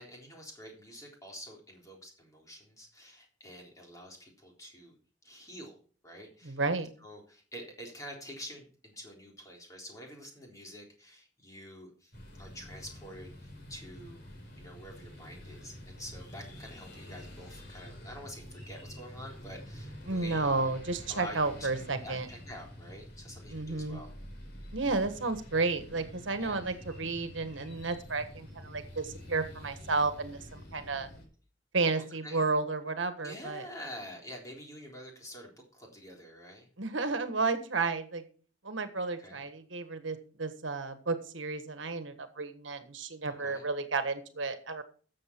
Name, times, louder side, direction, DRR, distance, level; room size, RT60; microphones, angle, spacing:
voice 1, 0.0-4.9 5.2-5.8 6.0-6.6 7.0-12.1 12.4-14.2 14.6-20.7 21.1-24.1 26.4-26.7 32.0-32.5 33.2-36.7 39.2-39.4 43.3-43.7, equal, 20° left, 0 dB, 3.7 m, -47 dB
voice 2, 6.4-6.9 20.1-22.3 23.5-24.0 24.7-31.1 31.7-33.7 36.8-38.2 38.6-44.8, right 3 dB, 80° right, 9 dB, 1.5 m, -32 dB
sound 1, 12.1-31.3, left 1 dB, 55° left, 4.3 m, -48 dB
13.0 x 7.5 x 4.6 m, 0.41 s
head